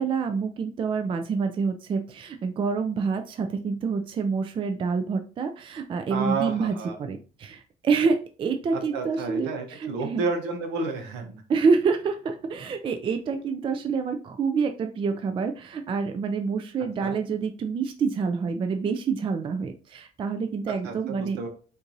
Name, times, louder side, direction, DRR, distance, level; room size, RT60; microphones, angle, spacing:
voice 1, 0.0-10.2 11.5-21.4, right 5 dB, 30° right, 7 dB, 0.3 m, -27 dB
voice 2, 6.1-7.0 8.7-11.4 17.0-17.2 20.8-21.5, right 4 dB, 90° right, 5 dB, 0.9 m, -31 dB
4.4 x 2.6 x 2.6 m, 0.38 s
cardioid pair, 110°, 17 cm